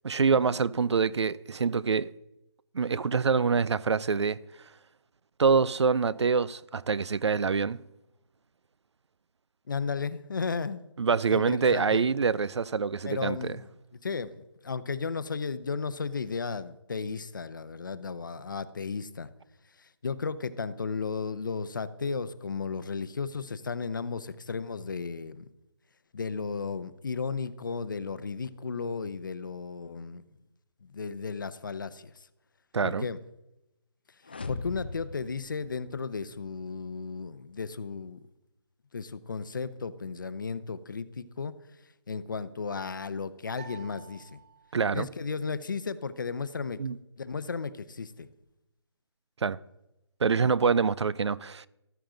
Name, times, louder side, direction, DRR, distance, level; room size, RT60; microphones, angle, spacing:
voice 1, 0.0-2.1 2.7-4.4 5.4-7.8 11.0-13.4 32.7-33.1 44.7-45.1 46.8-47.0 49.4-49.6 50.2-51.7, right 5 dB, 75° right, 0.5 m, -25 dB
voice 2, 9.7-10.8 11.3-12.1 13.1-19.3 19.8-25.5 26.1-30.2 30.8-32.3 32.8-33.2 34.5-38.2 38.9-41.6 42.1-44.4 44.9-46.8 47.2-48.3 50.4-50.5, left 5 dB, 45° left, 0.7 m, -34 dB
sound 1, 34.2-36.4, left 3 dB, 20° left, 0.4 m, -40 dB
sound 2, 43.5-45.0, right 7 dB, 30° right, 3.3 m, -50 dB
14.0 x 13.0 x 3.9 m
hypercardioid pair, 175°, 15 cm